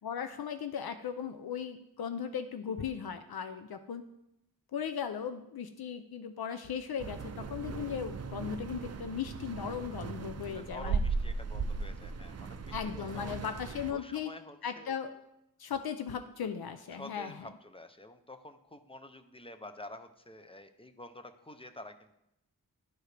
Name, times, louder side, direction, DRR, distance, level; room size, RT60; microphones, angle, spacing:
voice 1, 0.0-4.0 4.7-11.0 12.7-14.3 14.6-15.2 15.6-17.5, left 7 dB, 75° left, 9 dB, 0.5 m, -37 dB
sound 1, 7.0-13.9, right 5 dB, 45° right, 0.4 m, -37 dB
voice 2, 10.5-13.5 13.9-15.0 16.9-22.1, left 1 dB, 15° left, 9 dB, 0.5 m, -49 dB
10.5 x 4.7 x 3.3 m, 0.83 s
wide cardioid pair, 60°, 37 cm